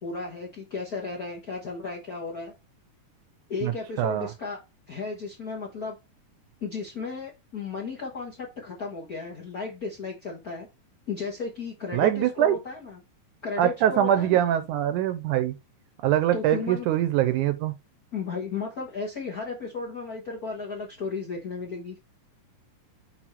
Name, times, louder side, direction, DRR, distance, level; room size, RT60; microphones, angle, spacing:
voice 1, 0.0-2.5 3.5-4.6 4.9-6.0 6.6-10.7 11.1-13.0 13.4-14.4 16.3-16.9 18.1-22.0, left 4 dB, 60° left, 0.9 m, -34 dB
voice 2, 4.0-4.3 11.9-12.6 13.6-15.5 16.0-17.7, right 11 dB, 80° right, 2.0 m, -23 dB
6.2 x 4.4 x 4.4 m
omnidirectional pair, 3.8 m